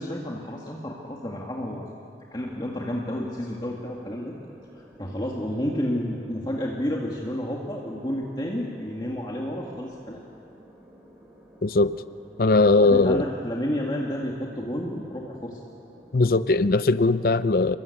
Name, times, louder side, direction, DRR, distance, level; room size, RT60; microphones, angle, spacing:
voice 1, 0.0-1.9 2.3-4.3 4.8-10.2 12.8-15.6, equal, 25° left, -2 dB, 2.0 m, -30 dB
sound 1, 2.4-16.6, equal, 10° right, 5.0 m, -52 dB
voice 2, 11.6-12.0 12.4-13.2 16.1-17.8, left 3 dB, 55° left, 14 dB, 0.6 m, -19 dB
29.5 x 22.0 x 8.6 m, 2.5 s
head